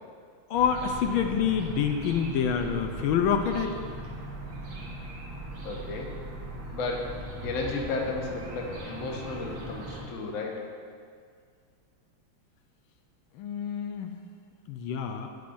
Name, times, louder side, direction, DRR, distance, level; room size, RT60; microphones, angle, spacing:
voice 1, 0.5-3.8 13.4-14.2 14.7-15.3, left 7 dB, 80° left, 5 dB, 1.3 m, -27 dB
sound 1, 0.5-10.0, right 1 dB, 85° right, 2.1 m, -39 dB
voice 2, 5.6-6.1 6.7-10.6, left 3 dB, 50° left, 0 dB, 1.0 m, -33 dB
11.5 x 7.1 x 2.6 m, 2.1 s
omnidirectional pair, 2.3 m